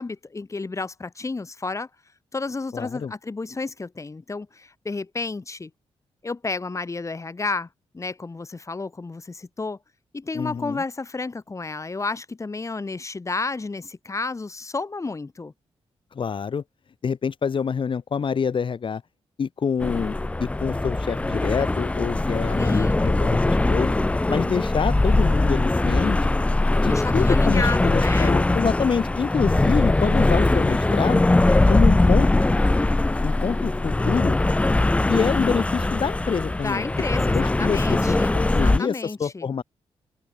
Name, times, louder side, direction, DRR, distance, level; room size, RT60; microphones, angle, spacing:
voice 1, 0.0-1.9 2.3-5.7 6.2-7.7 7.9-9.8 10.1-15.5 22.6-23.1 26.9-28.4 36.6-39.5, left 3 dB, 30° left, 5.0 m, -31 dB
voice 2, 2.7-3.1 10.3-10.8 16.1-16.6 17.0-19.0 19.4-23.9 24.3-26.2 26.8-31.3 31.7-32.4 33.2-34.4 35.1-36.8 37.3-39.6, left 6 dB, 55° left, 4.2 m, -26 dB
sound 1, 19.8-38.8, left 2 dB, 10° left, 0.4 m, -21 dB
cardioid pair, 85°, 10 cm